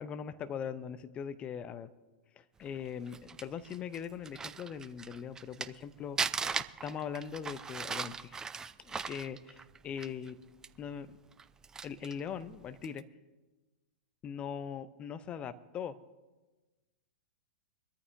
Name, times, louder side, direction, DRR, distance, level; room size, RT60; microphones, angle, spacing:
voice 1, 0.0-1.9 2.4-6.2 6.8-8.4 8.8-10.4 10.8-11.2 11.8-13.0 14.2-16.0, left 7 dB, 25° left, 12 dB, 0.7 m, -41 dB
Crumpling crinkling, 2.9-5.8 6.2-10.3 10.6-10.7 11.3-12.2 12.8-13.0, right 5 dB, 10° right, 0.4 m, -38 dB
23.5 x 13.5 x 2.7 m, 1.2 s
figure-of-eight pair, 105°, 5 cm